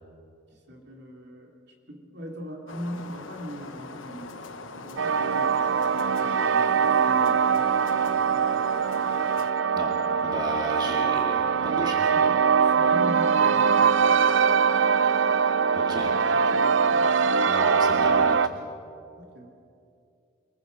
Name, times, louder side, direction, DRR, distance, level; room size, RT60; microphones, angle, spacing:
voice 1, 0.7-1.5 1.9-8.4 10.8-11.0 12.1-13.9 16.0-17.1 19.2-19.5, equal, 60° right, 1 dB, 3.0 m, -40 dB
sound 1, 2.7-9.5, left 3 dB, 90° left, 1.1 m, -42 dB
sound 2, 5.0-18.5, right 6 dB, 80° right, 0.6 m, -22 dB
voice 2, 10.2-12.0 15.7-16.1 17.5-18.4, right 1 dB, 20° right, 0 dB, 2.0 m, -34 dB
24.5 x 22.0 x 5.4 m, 2.6 s
head